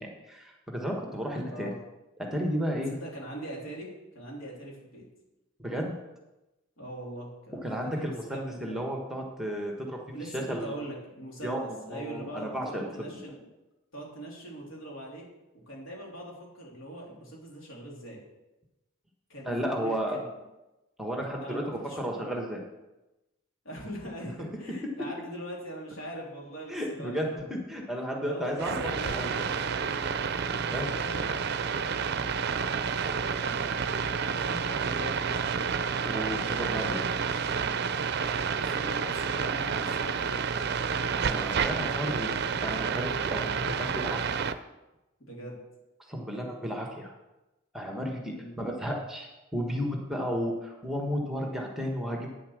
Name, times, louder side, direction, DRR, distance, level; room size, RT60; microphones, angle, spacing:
voice 1, 0.0-1.7 2.2-2.9 5.6-6.0 7.6-10.0 10.3-10.8 11.4-12.9 19.4-20.2 21.0-22.6 26.7-28.8 29.1-29.5 30.7-30.9 36.0-37.0 41.1-44.4 46.1-47.1 47.7-52.3, equal, ahead, 0 dB, 1.4 m, -33 dB
voice 2, 1.4-1.8 2.9-5.1 6.8-8.9 10.1-13.4 13.9-15.3 15.7-18.2 19.3-20.3 21.4-22.0 23.6-27.4 28.2-30.2 30.7-31.8 32.6-33.0 33.4-33.9 34.3-35.8 36.6-37.1 38.5-40.9 45.2-45.6 48.4-48.6, right 1 dB, 75° left, -3 dB, 3.5 m, -42 dB
sound 1, 28.6-44.5, right 6 dB, 55° right, 0.5 m, -30 dB
9.3 x 7.3 x 6.4 m, 1.0 s
head